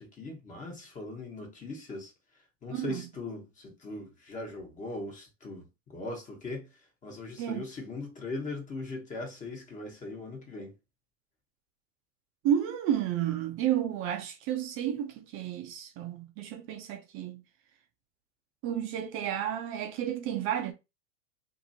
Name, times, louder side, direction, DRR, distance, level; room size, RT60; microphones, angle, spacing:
voice 1, 0.0-2.1 2.6-6.7 7.0-10.7, left 2 dB, 20° left, 1.1 m, -40 dB
voice 2, 2.7-3.1 7.4-7.7 12.4-17.4 18.6-20.7, right 10 dB, 35° right, 0.5 m, -31 dB
2.8 x 2.6 x 2.7 m
hypercardioid pair, 120°, 39 cm